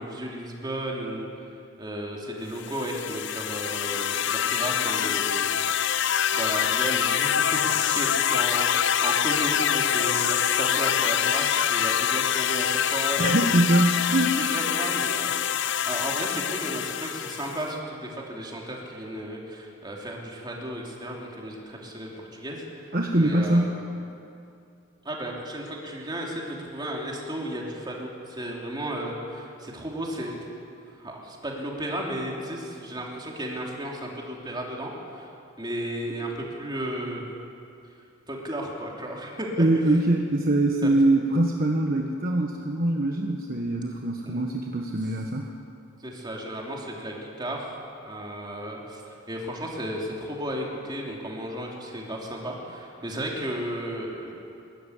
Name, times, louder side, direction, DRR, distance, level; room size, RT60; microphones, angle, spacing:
voice 1, 0.0-1.5 1.8-5.6 6.3-13.3 13.8-23.8 25.0-30.4 31.0-35.3 35.6-37.3 38.3-39.7 40.8-40.9 44.3-44.4 46.0-49.0 49.3-54.3, right 1 dB, 20° right, -1 dB, 3.1 m, -34 dB
sound 1, 2.6-17.7, left 9 dB, 60° left, 0.6 m, -25 dB
voice 2, 13.2-14.6 22.9-23.7 39.6-45.5, right 1 dB, 45° right, 1 dB, 1.2 m, -23 dB
21.5 x 13.0 x 10.0 m, 2.5 s
head